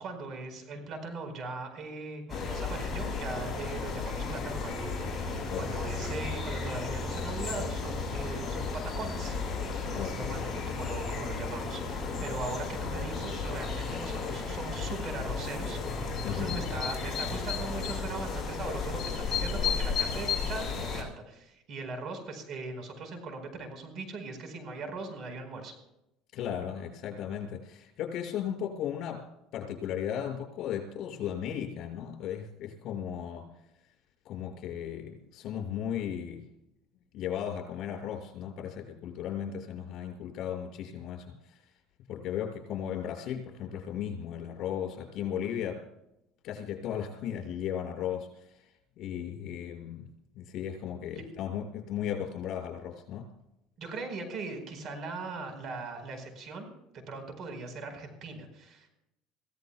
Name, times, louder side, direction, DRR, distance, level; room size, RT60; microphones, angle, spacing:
voice 1, 0.0-9.4 9.9-25.7 51.1-51.2 53.8-56.7 56.9-58.9, right 3 dB, 50° right, 6 dB, 4.5 m, -40 dB
sound 1, 2.3-21.0, left 4 dB, 20° left, 6.6 m, -33 dB
voice 2, 5.5-5.8 9.9-10.4 16.2-16.6 26.3-29.2 29.5-33.5 34.2-36.5 37.1-41.6 42.1-45.8 46.4-48.6 49.0-50.1 50.3-53.3, left 9 dB, 55° left, 1 dB, 5.8 m, -36 dB
25.5 x 16.5 x 2.3 m, 0.87 s
supercardioid pair, 105°, 0 cm